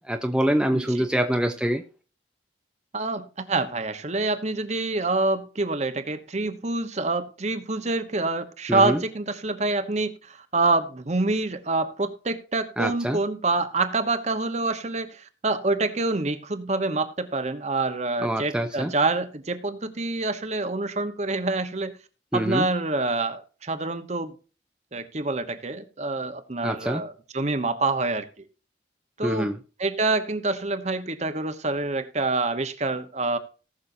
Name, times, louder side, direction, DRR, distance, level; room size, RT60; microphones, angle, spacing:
voice 1, 0.1-1.8 8.7-9.0 12.8-13.2 18.2-18.9 22.3-22.7 26.6-27.0 29.2-29.6, equal, 5° right, 0.7 m, -25 dB
voice 2, 0.7-1.1 2.9-22.0 22.3-24.3 24.9-28.4 29.2-29.5 29.8-33.4, right 3 dB, 40° right, 1.1 m, -26 dB
18.5 x 6.4 x 2.7 m
head